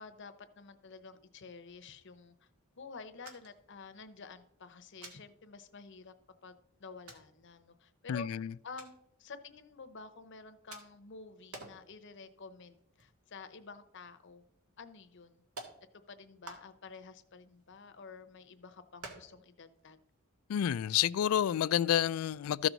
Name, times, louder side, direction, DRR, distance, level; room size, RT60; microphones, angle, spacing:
voice 1, 0.0-2.5 2.8-6.1 6.4-8.3 8.6-14.4 14.8-15.4 16.1-20.0, left 4 dB, 55° left, 0.8 m, -50 dB
sound 1, 3.2-3.7 3.9-4.0 5.0-5.2 6.1-6.2 7.1-7.3 8.8-9.0 10.7-11.1 11.5-11.9 12.3-12.4 12.8-13.7 14.0-14.1 14.9-15.0 15.6-15.8 16.4-17.0 17.5-18.2 19.0-19.5 19.8-19.9 20.2-20.3 20.7-20.9, right 3 dB, 90° right, 1.8 m, -49 dB
voice 2, 8.1-8.5 20.5-22.7, left 10 dB, 75° left, 0.3 m, -29 dB
14.0 x 6.0 x 4.0 m
head